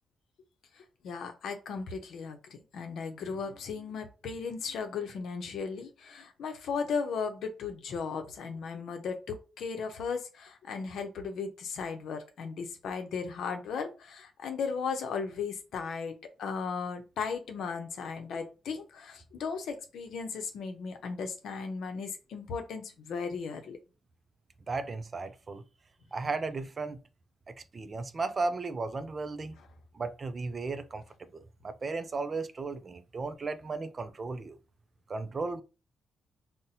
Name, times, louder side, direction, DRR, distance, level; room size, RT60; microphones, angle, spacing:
voice 1, 0.8-23.8, left 5 dB, 75° left, 0.7 m, -36 dB
voice 2, 24.7-25.6 26.1-27.0 27.5-29.6 29.9-31.0 31.3-34.6 35.1-35.6, right 3 dB, 35° right, 0.4 m, -35 dB
4.0 x 2.1 x 2.6 m
cardioid pair, 90°, 0 cm